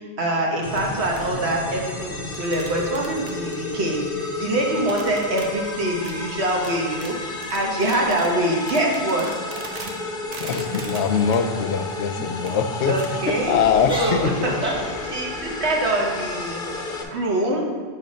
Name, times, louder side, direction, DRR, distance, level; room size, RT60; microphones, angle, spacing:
voice 1, 0.2-7.2 7.5-9.2 12.9-13.5 13.9-14.7 15.0-16.6 17.0-17.6, right 1 dB, 75° right, -1 dB, 1.4 m, -24 dB
sound 1, 0.6-17.0, left 3 dB, 55° left, 1.0 m, -32 dB
sound 2, 0.7-0.9 1.2-1.3 2.3-4.0 4.9-5.5 6.0-10.0 10.3-11.4 11.8-12.0 12.5-12.6 12.9-13.1 13.4-13.5 14.3-14.4 15.0-15.1 15.3-15.4, right 4 dB, 45° right, 0.6 m, -40 dB
sound 3, 8.3-8.6 9.1-9.3 9.7-10.0 10.3-10.7 11.3-11.7 12.2-12.3 13.1-13.4 13.8-15.0, equal, 5° right, 1.1 m, -35 dB
voice 2, 10.4-13.0 13.3-14.4, left 6 dB, 85° left, 8 dB, 0.9 m, -22 dB
8.6 x 3.3 x 5.1 m, 1.5 s
omnidirectional pair, 1.1 m